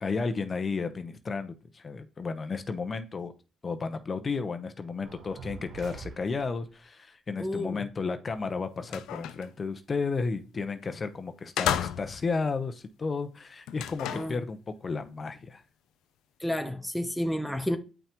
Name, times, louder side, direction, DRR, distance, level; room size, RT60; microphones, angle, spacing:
voice 1, 0.0-3.3 3.6-15.6, left 4 dB, 35° left, 0.9 m, -33 dB
sound 1, 5.0-6.7, right 5 dB, 65° right, 1.1 m, -45 dB
voice 2, 7.4-7.8 14.1-14.4 16.4-17.8, left 1 dB, ahead, 0.7 m, -31 dB
sound 2, 8.3-8.4 8.8-9.5 10.8-11.0 11.6-12.3 13.7-14.4, left 10 dB, 90° left, 0.5 m, -32 dB
8.4 x 5.7 x 3.1 m
cardioid pair, 90°, 0 cm